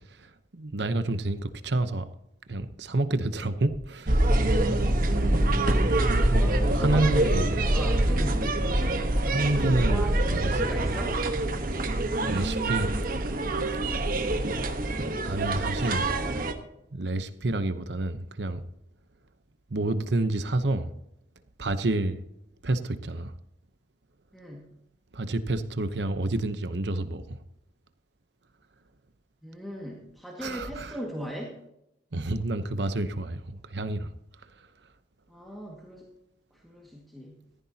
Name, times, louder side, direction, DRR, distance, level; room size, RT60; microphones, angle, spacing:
voice 1, 0.5-2.1 2.5-4.2 6.0-7.5 9.3-10.5 10.8-11.0 12.3-12.9 15.2-16.1 16.9-18.6 19.7-20.9 21.6-22.2 22.6-23.3 25.1-27.4 30.4-31.0 32.1-33.4 33.7-34.1, right 2 dB, 70° right, 11 dB, 0.9 m, -28 dB
sound 1, 4.1-16.5, right 1 dB, 50° right, 1.2 m, -25 dB
voice 2, 4.9-5.5 6.4-8.5 9.8-11.2 13.7-14.0 24.3-24.7 29.4-31.6 35.3-36.1 36.6-37.4, equal, ahead, -2 dB, 1.9 m, -38 dB
15.0 x 14.5 x 2.9 m, 0.81 s
head